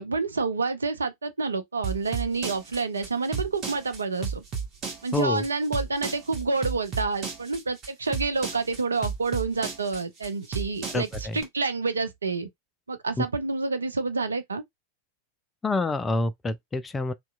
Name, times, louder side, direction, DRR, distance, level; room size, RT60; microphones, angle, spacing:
voice 1, 0.0-4.4 5.0-12.5 12.9-14.6, right 3 dB, 75° right, 0.4 m, -28 dB
sound 1, 1.8-11.4, right 6 dB, 35° right, 1.1 m, -33 dB
voice 2, 5.1-5.4 10.9-11.4 13.2-13.3 15.6-17.1, left 2 dB, 15° left, 0.3 m, -27 dB
2.7 x 2.2 x 2.3 m
figure-of-eight pair, 90°, 0 cm